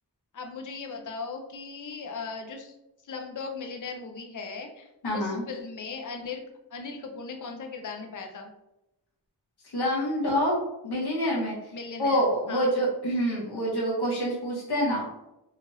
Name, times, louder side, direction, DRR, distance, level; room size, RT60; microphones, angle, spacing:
voice 1, 0.3-2.7 3.0-6.4 6.7-8.5 11.7-12.7, left 4 dB, 50° left, 3 dB, 0.5 m, -38 dB
voice 2, 5.0-5.4 9.7-10.6 10.8-11.6 12.0-15.1, equal, 75° left, -5 dB, 0.9 m, -26 dB
2.9 x 2.4 x 2.9 m, 0.91 s
wide cardioid pair, 80°, 39 cm